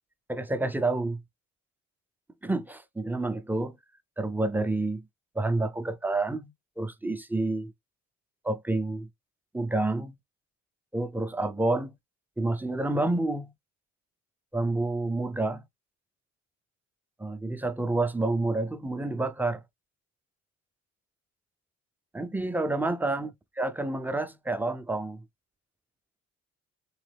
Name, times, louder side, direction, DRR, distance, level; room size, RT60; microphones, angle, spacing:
voice 1, 0.3-1.2 2.4-3.8 4.2-5.0 5.4-6.5 6.8-7.7 8.4-9.1 9.5-10.2 10.9-11.9 12.4-13.5 14.5-15.6 17.2-19.6 22.1-25.2, right 2 dB, 5° right, 0.4 m, -29 dB
3.6 x 3.1 x 3.3 m
cardioid pair, 90°, 30 cm